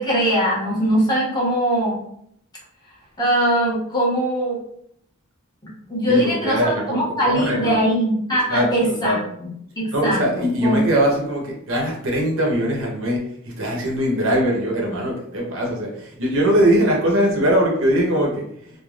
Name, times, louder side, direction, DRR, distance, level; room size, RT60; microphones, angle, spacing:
voice 1, 0.0-2.0 3.2-4.6 5.9-9.5 9.8-10.2 10.6-10.8, right 1 dB, 20° left, -6 dB, 0.9 m, -21 dB
voice 2, 6.1-7.9 8.5-8.7 9.0-9.2 9.9-18.4, equal, 65° right, 0 dB, 0.7 m, -21 dB
3.1 x 2.2 x 2.3 m, 0.71 s
head